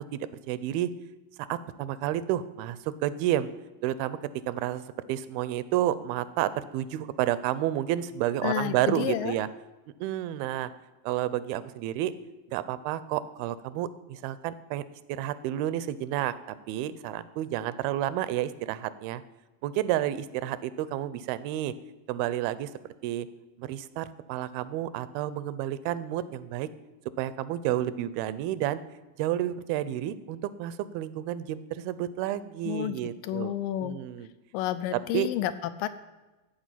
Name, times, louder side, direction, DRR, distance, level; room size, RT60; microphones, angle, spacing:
voice 1, 0.1-0.9 1.4-3.5 3.8-4.2 4.5-9.5 10.0-10.7 11.0-12.1 12.5-16.3 16.7-19.2 19.6-21.7 22.1-22.7 23.0-23.3 23.6-26.7 27.2-28.8 29.2-33.5 33.8-34.3 35.1-35.3, right 12 dB, 85° right, 15 dB, 2.5 m, -30 dB
voice 2, 8.4-9.4 32.6-33.0 33.2-34.0 34.5-35.9, left 12 dB, 80° left, 12 dB, 2.0 m, -30 dB
14.5 x 5.1 x 9.0 m, 1.1 s
omnidirectional pair, 4.3 m